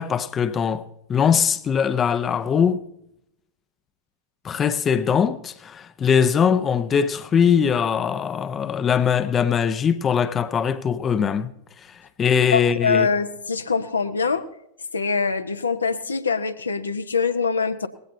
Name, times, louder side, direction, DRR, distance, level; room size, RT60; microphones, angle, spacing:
voice 1, 0.0-2.8 4.4-11.5 11.8-13.1, left 7 dB, 25° left, 0.6 m, -21 dB
voice 2, 12.5-14.5 14.9-17.9, left 5 dB, 75° left, 0.8 m, -23 dB
19.5 x 16.0 x 2.7 m
figure-of-eight pair, 90°, 0 cm